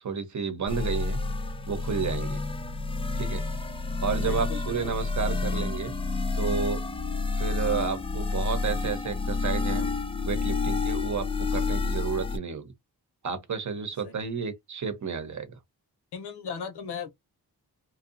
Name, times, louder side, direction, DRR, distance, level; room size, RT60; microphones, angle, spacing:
voice 1, 0.0-1.2 1.7-2.4 3.2-3.4 4.0-5.9 6.4-6.8 7.3-9.9 10.2-11.3 11.5-12.7 13.2-15.5, right 6 dB, 50° right, 0.8 m, -31 dB
sound 1, 0.7-12.4, left 3 dB, 15° left, 0.3 m, -29 dB
voice 2, 4.3-5.1 14.0-14.1 16.1-17.1, left 6 dB, 85° left, 0.8 m, -37 dB
2.7 x 2.3 x 2.5 m
wide cardioid pair, 95°, 39 cm